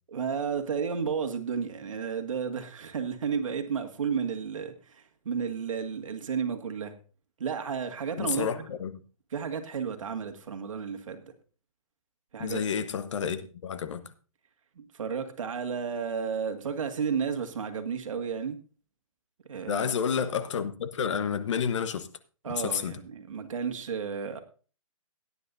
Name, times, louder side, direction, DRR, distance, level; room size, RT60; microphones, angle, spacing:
voice 1, 0.1-6.9 7.4-8.7 9.3-11.2 12.3-12.6 14.8-18.6 19.5-19.8 22.4-24.4, right 6 dB, 60° right, 1.9 m, -32 dB
voice 2, 8.2-9.0 12.4-14.0 19.7-22.1 22.5-22.9, left 7 dB, 55° left, 1.1 m, -30 dB
17.0 x 9.8 x 2.6 m
hypercardioid pair, 145°, 18 cm